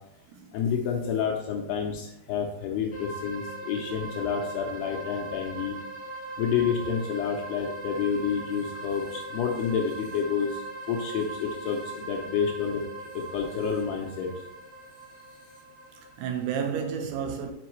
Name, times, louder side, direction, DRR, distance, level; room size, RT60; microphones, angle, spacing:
voice 1, 0.5-5.8 6.4-10.6 10.9-12.8 13.1-14.3, left 7 dB, 80° left, 2.4 m, -29 dB
sound 1, 2.9-16.5, right 2 dB, 60° left, 0.7 m, -40 dB
voice 2, 15.9-17.5, right 7 dB, 85° right, 3.2 m, -31 dB
7.0 x 5.0 x 3.1 m
omnidirectional pair, 5.2 m